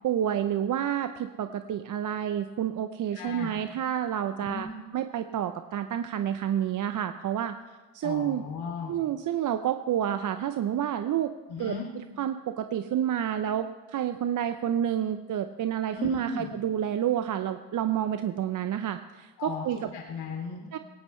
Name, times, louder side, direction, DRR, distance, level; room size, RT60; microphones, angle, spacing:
voice 1, 0.0-4.7 4.9-7.6 7.9-8.4 8.9-11.3 11.6-19.8 20.7-20.8, right 10 dB, 40° right, 9 dB, 0.7 m, -29 dB
voice 2, 3.1-3.5 4.4-4.7 8.0-9.0 11.5-11.9 15.9-16.5 19.4-19.6 19.9-20.8, left 4 dB, 55° left, 0 dB, 2.9 m, -36 dB
17.5 x 17.5 x 3.2 m, 1.3 s
hypercardioid pair, 75°, 47 cm